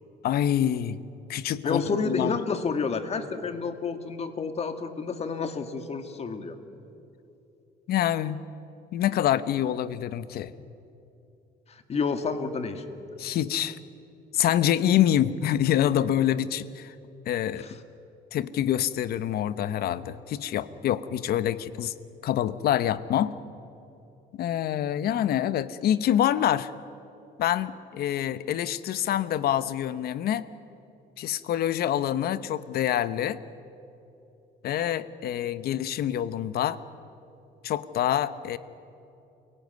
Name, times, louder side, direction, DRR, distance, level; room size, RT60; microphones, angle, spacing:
voice 1, 0.2-1.0 1.3-2.3 7.9-8.4 8.9-10.5 13.2-13.8 14.3-16.9 17.3-17.7 18.3-21.9 22.2-23.3 24.4-26.7 27.4-30.5 31.2-33.4 34.6-36.8 37.6-38.6, left 11 dB, 65° left, 15 dB, 1.0 m, -26 dB
voice 2, 1.6-6.6 11.7-12.8 17.6-17.7, left 4 dB, 40° left, 8 dB, 2.1 m, -30 dB
29.0 x 17.5 x 9.5 m, 2.8 s
cardioid pair, 110°, 17 cm